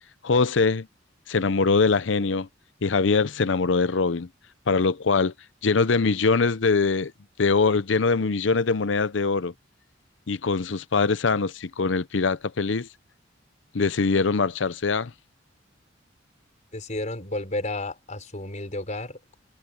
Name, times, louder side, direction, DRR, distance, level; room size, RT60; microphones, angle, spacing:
voice 1, 0.2-0.9 1.3-2.5 2.8-4.3 4.7-5.3 5.6-7.1 7.4-9.5 10.3-12.9 13.7-15.1, left 4 dB, 70° left, 0.7 m, -22 dB
voice 2, 16.7-19.4, left 2 dB, 40° left, 4.5 m, -32 dB
head